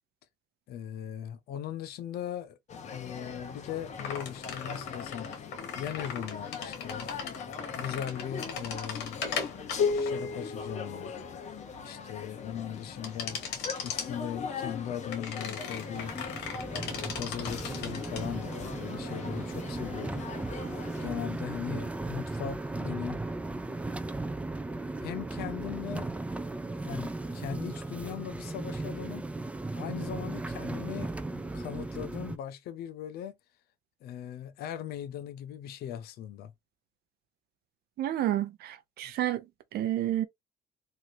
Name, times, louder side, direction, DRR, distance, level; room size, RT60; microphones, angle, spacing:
voice 1, 0.7-2.6 2.9-5.3 5.8-7.1 7.8-9.3 9.9-11.1 11.8-13.4 13.8-16.1 16.7-20.3 21.0-23.2 25.0-26.1 26.8-29.3 29.8-33.4 34.0-36.5, left 10 dB, 65° left, 0.5 m, -39 dB
sound 1, 2.7-21.1, left 5 dB, 45° left, 0.8 m, -41 dB
sound 2, 4.0-11.8 13.0-14.1 15.1-18.2, left 5 dB, 85° left, 1.1 m, -36 dB
sound 3, 15.7-32.4, right 2 dB, 10° right, 0.3 m, -36 dB
voice 2, 38.0-39.4 39.7-40.2, right 12 dB, 70° right, 0.6 m, -30 dB
3.1 x 2.6 x 2.7 m
cardioid pair, 110°, 17 cm